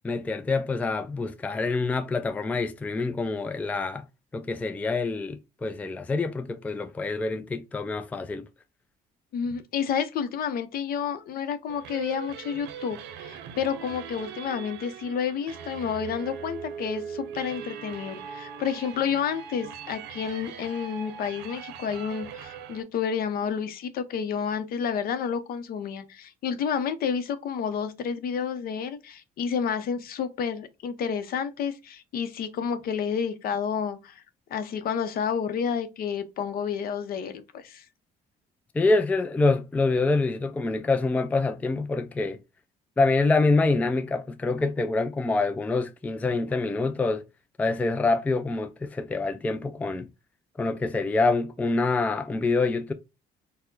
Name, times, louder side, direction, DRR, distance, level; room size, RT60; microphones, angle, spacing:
voice 1, 0.0-4.0 4.3-8.5 38.7-42.4 43.0-47.2 47.6-50.1 50.6-52.9, left 3 dB, 10° left, 0.3 m, -26 dB
voice 2, 9.3-34.2 34.5-37.8, left 7 dB, 60° left, 0.7 m, -30 dB
sound 1, 11.7-22.8, right 7 dB, 90° right, 0.6 m, -40 dB
4.3 x 2.1 x 3.8 m
cardioid pair, 110°, 17 cm